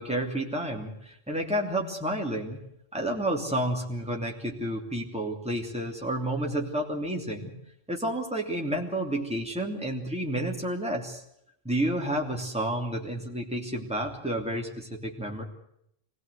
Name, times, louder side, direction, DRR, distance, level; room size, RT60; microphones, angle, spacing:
voice 1, 0.0-2.6 2.9-7.5 7.9-11.2 11.6-15.4, right 1 dB, 5° right, 0 dB, 3.0 m, -30 dB
24.5 x 18.0 x 8.2 m, 0.76 s
omnidirectional pair, 1.1 m